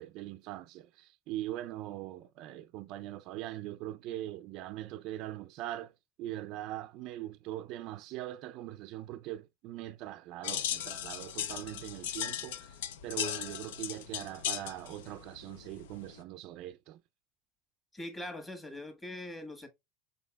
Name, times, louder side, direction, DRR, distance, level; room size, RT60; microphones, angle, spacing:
voice 1, 0.0-5.9 6.2-17.0, right 14 dB, 55° right, 0.4 m, -41 dB
sound 1, 10.4-16.2, left 10 dB, 85° left, 0.5 m, -37 dB
voice 2, 17.9-19.7, left 1 dB, 15° left, 1.5 m, -42 dB
5.5 x 4.1 x 2.2 m
supercardioid pair, 120°, 0 cm